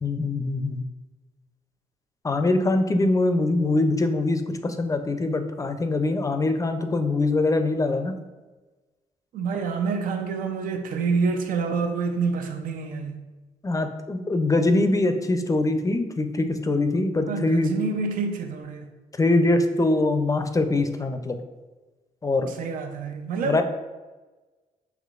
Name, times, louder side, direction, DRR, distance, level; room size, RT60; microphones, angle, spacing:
voice 1, 0.0-0.8 2.2-8.1 13.6-17.8 19.2-21.4 22.2-22.5 23.4-23.6, left 2 dB, 25° left, 0.5 m, -23 dB
voice 2, 9.3-13.2 17.3-18.9 22.6-23.6, right 5 dB, 70° right, 0.6 m, -27 dB
5.7 x 3.0 x 2.5 m
cardioid pair, 70°, 14 cm